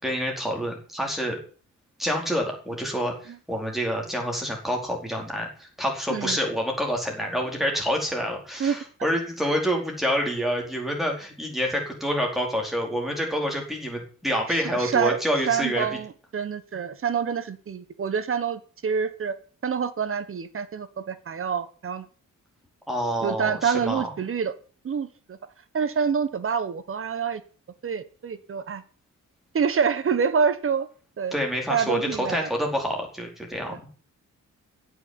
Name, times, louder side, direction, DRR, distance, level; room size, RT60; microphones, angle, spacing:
voice 1, 0.0-1.4 2.0-15.9 22.9-24.1 31.3-33.8, equal, ahead, 0 dB, 4.5 m, -27 dB
voice 2, 14.5-15.2 15.5-19.3 19.6-22.1 23.2-24.5 24.8-25.4 25.7-27.4 27.8-28.8 29.5-30.9 31.2-31.4 31.7-32.5 33.7-33.8, right 6 dB, 40° right, 13 dB, 1.4 m, -27 dB
16.0 x 6.6 x 9.9 m, 0.41 s
wide cardioid pair, 180°, 32 cm